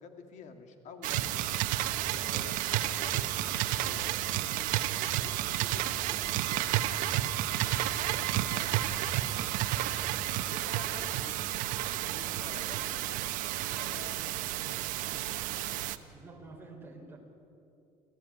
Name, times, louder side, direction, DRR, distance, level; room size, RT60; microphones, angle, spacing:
voice 1, 0.0-1.6 2.1-6.8 7.1-9.9 10.4-11.4 11.7-16.0, left 5 dB, 65° left, 6 dB, 2.7 m, -51 dB
sound 1, 1.0-16.0, right 14 dB, 85° right, 1.0 m, -31 dB
voice 2, 2.2-2.5 10.8-11.5 16.1-17.2, right 2 dB, 15° right, 1 dB, 4.4 m, -50 dB
27.5 x 15.5 x 9.8 m, 2.8 s
cardioid pair, 135°, 13 cm